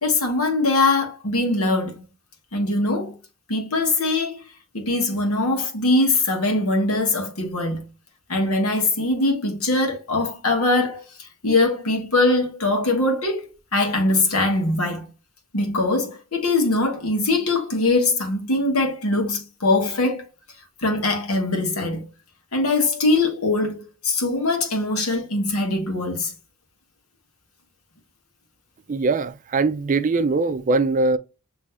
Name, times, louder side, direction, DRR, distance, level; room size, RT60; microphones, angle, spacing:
voice 1, 0.0-2.0 2.5-3.2 3.5-4.4 4.7-7.8 8.3-15.1 15.5-20.2 20.8-22.1 22.5-26.3, left 2 dB, 80° left, 1.5 m, -22 dB
voice 2, 28.9-31.2, right 3 dB, 35° right, 0.4 m, -21 dB
6.2 x 3.1 x 2.4 m
head